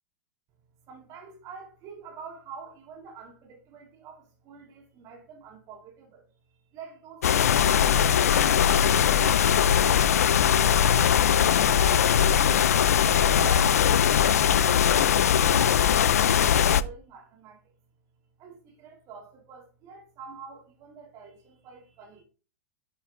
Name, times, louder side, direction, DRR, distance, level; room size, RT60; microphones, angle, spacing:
voice 1, 0.9-12.1 12.7-17.7 18.4-22.2, right 5 dB, 40° right, 3.2 m, -47 dB
sound 1, 7.2-16.8, left 9 dB, 85° left, 0.4 m, -21 dB
10.5 x 6.0 x 2.5 m
hypercardioid pair, 110°, 8 cm